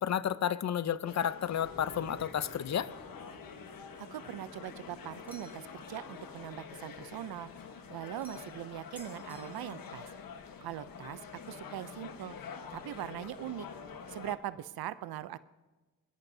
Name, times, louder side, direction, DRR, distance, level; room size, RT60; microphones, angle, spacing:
voice 1, 0.0-2.9, left 9 dB, 50° left, 15 dB, 0.6 m, -31 dB
sound 1, 1.0-14.4, left 6 dB, 65° left, 1.3 m, -47 dB
sound 2, 1.5-6.5, left 1 dB, 90° left, 5.7 m, -54 dB
voice 2, 4.0-7.5 7.9-10.1 10.6-11.2 11.5-12.4 12.7-13.7 14.1-15.4, right 12 dB, 85° right, 15 dB, 0.6 m, -41 dB
sound 3, 5.3-5.8 8.2-8.6 9.0-9.9, right 1 dB, 5° right, 2.5 m, -55 dB
22.5 x 20.0 x 2.7 m, 1.2 s
cardioid pair, 90°, 36 cm